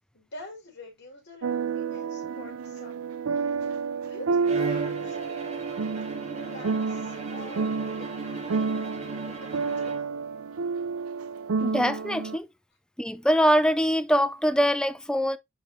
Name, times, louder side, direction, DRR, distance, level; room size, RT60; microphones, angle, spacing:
voice 1, 0.1-3.1 4.0-5.6 6.3-9.9, left 1 dB, 55° left, 5.0 m, -46 dB
sound 1, 1.4-12.4, right 5 dB, 90° right, 0.5 m, -30 dB
Bowed string instrument, 4.4-10.5, right 3 dB, 35° right, 2.4 m, -37 dB
voice 2, 11.6-12.5 13.0-15.4, equal, 5° left, 0.6 m, -23 dB
11.0 x 3.9 x 2.9 m
head